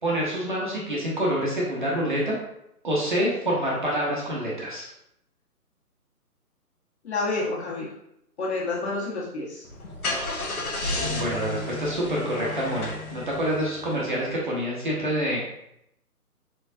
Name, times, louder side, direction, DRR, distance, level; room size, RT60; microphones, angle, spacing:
voice 1, 0.0-2.4 2.8-4.9 11.0-15.4, equal, 35° right, -4 dB, 0.8 m, -27 dB
voice 2, 7.0-7.9 8.4-9.7, left 3 dB, 45° left, -6 dB, 1.6 m, -29 dB
Car / Engine starting, 9.6-14.3, left 2 dB, 65° left, 1.3 m, -32 dB
4.4 x 3.8 x 2.7 m, 0.80 s
figure-of-eight pair, 155°, 46 cm